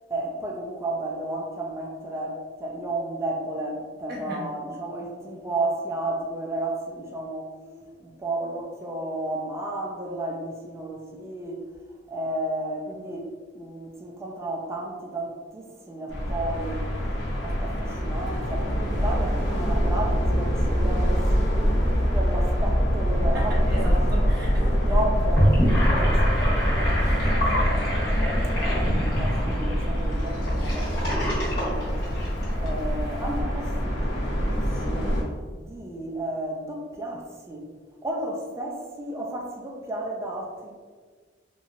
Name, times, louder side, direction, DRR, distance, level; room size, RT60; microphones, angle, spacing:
voice 1, 0.1-7.5 8.0-11.6 12.1-13.3 13.5-16.8 17.4-23.8 24.6-27.8 28.6-31.9 32.5-35.1 35.5-37.7 38.0-40.7, right 1 dB, 15° right, -1 dB, 0.3 m, -33 dB
voice 2, 4.1-4.5 7.6-7.8 23.3-24.8, equal, 60° right, -3 dB, 0.8 m, -35 dB
sound 1, 16.1-35.2, equal, 75° left, 0.7 m, -24 dB
Gurgling / Sink (filling or washing), 25.2-32.7, equal, 55° left, 1.1 m, -27 dB
3.0 x 2.7 x 2.4 m, 1.5 s
head